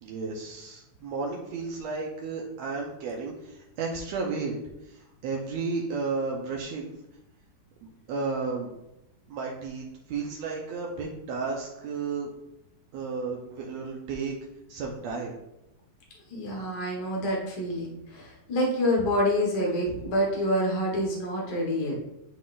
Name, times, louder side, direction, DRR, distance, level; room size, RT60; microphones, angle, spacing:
voice 1, 0.0-4.5 4.9-6.9 8.1-8.7 9.3-12.3 12.9-14.3 14.7-15.3, right 4 dB, 75° right, -1 dB, 1.6 m, -33 dB
voice 2, 16.3-22.0, equal, 90° left, -2 dB, 0.9 m, -27 dB
12.0 x 3.9 x 2.5 m, 0.89 s
omnidirectional pair, 3.8 m